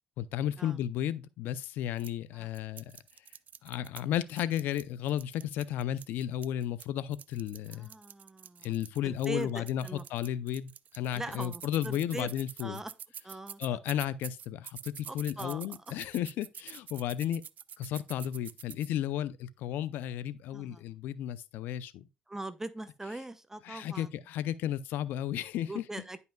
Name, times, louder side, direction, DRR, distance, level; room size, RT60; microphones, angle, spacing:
voice 1, 0.2-2.9 3.6-7.9 8.6-12.8 13.6-17.4 17.8-22.1 23.6-25.8, left 11 dB, 85° left, 0.4 m, -33 dB
sound 1, 2.0-2.1 2.5-4.0 4.3-6.9 7.1-18.9, right 8 dB, 55° right, 0.4 m, -47 dB
voice 2, 7.7-8.7 9.0-10.0 11.1-12.3 12.6-12.9 13.2-13.8 15.1-16.0 20.5-20.8 22.3-24.1 25.7-26.2, right 2 dB, 15° right, 0.7 m, -41 dB
10.5 x 5.5 x 2.2 m
cardioid pair, 75°, 3 cm